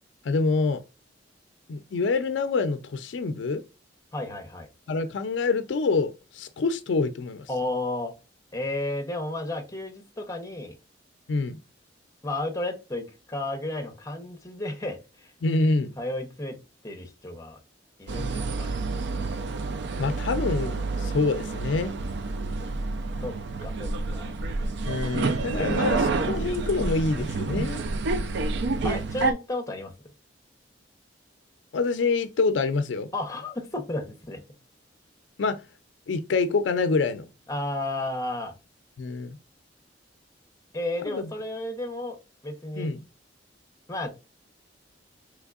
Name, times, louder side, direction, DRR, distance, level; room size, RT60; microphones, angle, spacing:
voice 1, 0.2-0.8 1.7-3.6 4.9-7.5 11.3-11.6 15.4-15.9 20.0-21.9 24.9-27.9 31.7-33.1 35.4-35.6 36.1-37.3 39.0-39.4 41.1-41.3 42.8-43.0, left 3 dB, 75° left, 0.4 m, -26 dB
voice 2, 4.1-4.7 7.5-8.1 8.5-10.7 12.2-15.0 16.0-16.6 16.8-17.6 18.0-18.9 23.2-23.4 23.6-24.3 25.6-25.7 28.8-29.9 33.1-34.4 37.5-38.5 40.7-42.2 42.4-42.9 43.9-44.1, left 2 dB, 20° left, 0.7 m, -32 dB
sound 1, 18.1-29.3, right 3 dB, 65° right, 0.4 m, -29 dB
3.4 x 3.3 x 2.3 m
head